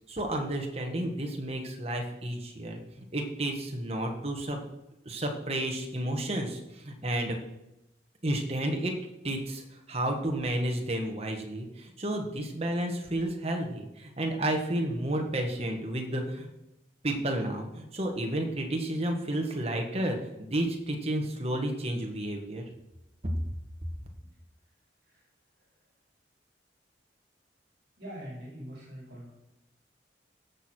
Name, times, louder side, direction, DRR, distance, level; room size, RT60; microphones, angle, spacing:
voice 1, 0.1-4.6 5.0-7.4 8.2-8.9 9.2-16.5 17.0-22.6, right 1 dB, 35° right, 2 dB, 1.5 m, -31 dB
voice 2, 28.0-29.3, equal, 60° right, -6 dB, 4.7 m, -45 dB
16.0 x 6.3 x 4.4 m, 0.93 s
head